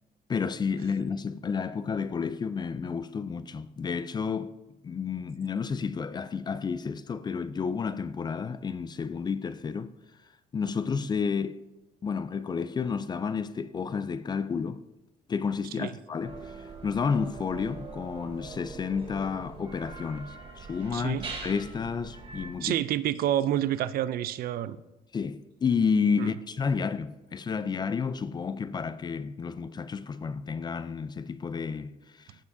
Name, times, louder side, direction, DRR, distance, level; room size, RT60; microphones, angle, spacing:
voice 1, 0.3-4.6 4.8-9.9 10.5-11.6 12.0-14.8 15.3-22.8 25.1-32.4, left 5 dB, 25° left, 0.3 m, -31 dB
sound 1, 16.2-22.5, right 4 dB, 35° right, 2.4 m, -43 dB
voice 2, 20.9-21.3 22.6-24.8 26.2-26.3, right 12 dB, 65° right, 0.4 m, -28 dB
15.0 x 5.9 x 2.6 m
cardioid pair, 110°, 17 cm